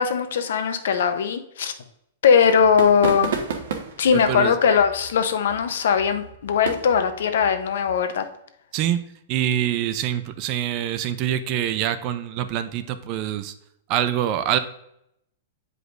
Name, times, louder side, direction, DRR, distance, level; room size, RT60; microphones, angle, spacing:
voice 1, 0.0-1.7 2.2-3.4 4.0-8.2, left 6 dB, 70° left, 8 dB, 0.7 m, -20 dB
sound 1, 2.5-8.0, right 6 dB, 60° right, 1.1 m, -34 dB
voice 2, 4.1-4.6 8.7-9.0 9.3-13.5 13.9-14.6, right 11 dB, 30° right, 11 dB, 0.4 m, -25 dB
7.9 x 5.0 x 2.5 m, 0.77 s
supercardioid pair, 175°, 0 cm